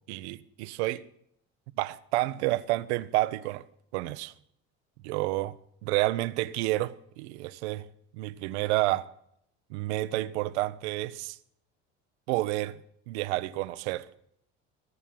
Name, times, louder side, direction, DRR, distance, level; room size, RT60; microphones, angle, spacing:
voice 1, 0.1-1.0 1.8-3.7 3.9-4.3 5.0-5.6 5.8-7.9 8.1-9.1 9.7-11.4 12.3-12.8 13.1-14.1, right 18 dB, 80° right, 0.7 m, -29 dB
17.0 x 7.1 x 7.6 m
hypercardioid pair, 70°, 33 cm